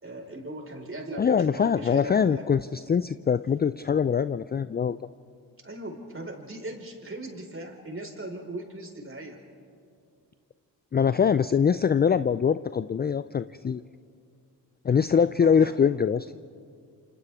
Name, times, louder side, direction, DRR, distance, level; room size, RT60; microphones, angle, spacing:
voice 1, 0.0-2.5 5.6-9.4 15.4-15.7, right 1 dB, 25° right, 1 dB, 5.1 m, -39 dB
voice 2, 1.2-5.0 10.9-13.8 14.8-16.3, left 7 dB, 20° left, 14 dB, 0.5 m, -23 dB
27.5 x 27.0 x 3.7 m, 2.3 s
hypercardioid pair, 45°, 46 cm